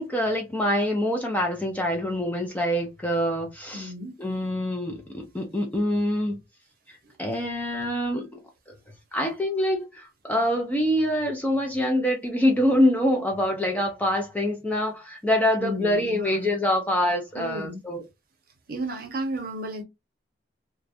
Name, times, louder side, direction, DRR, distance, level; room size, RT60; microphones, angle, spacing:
voice 1, 0.0-3.9 4.2-6.4 6.9-8.4 8.7-8.8 9.1-18.0, left 1 dB, 10° left, 0.4 m, -25 dB
voice 2, 3.7-4.1 7.0-7.1 15.6-16.5 17.3-17.8 18.7-19.8, right 1 dB, 50° right, 0.7 m, -33 dB
2.4 x 2.1 x 2.6 m
head